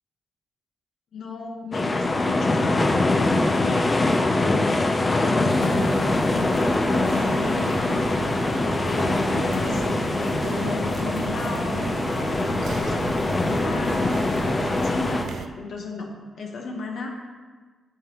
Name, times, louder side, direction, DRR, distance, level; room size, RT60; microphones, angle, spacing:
voice 1, 1.1-3.9 4.3-16.1 16.3-17.1, left 3 dB, 70° left, 1 dB, 1.2 m, -34 dB
sound 1, 1.7-15.3, left 2 dB, 30° left, 0.6 m, -23 dB
sound 2, 5.5-15.5, right 6 dB, 75° right, 0.3 m, -34 dB
8.0 x 5.3 x 3.0 m, 1.4 s
cardioid pair, 75°, 0 cm